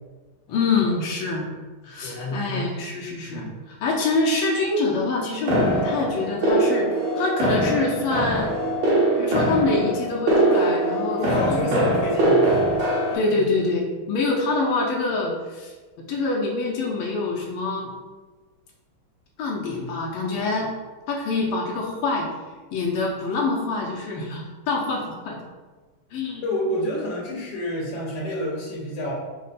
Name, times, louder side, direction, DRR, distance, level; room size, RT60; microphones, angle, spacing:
voice 1, 0.5-1.5 1.8-6.9 7.2-8.5 9.2-11.7 13.1-15.7 16.1-17.9 19.4-20.7 21.1-22.3 22.7-25.4 26.1-26.4, left 3 dB, 80° left, -1 dB, 1.5 m, -25 dB
voice 2, 2.0-2.7 3.3-3.6 11.2-12.6 12.9-13.4 26.4-29.1, left 1 dB, 65° left, -4 dB, 1.3 m, -29 dB
sound 1, 5.5-13.2, right 1 dB, 70° right, 1.7 m, -22 dB
5.2 x 2.1 x 4.1 m, 1.3 s
omnidirectional pair, 2.4 m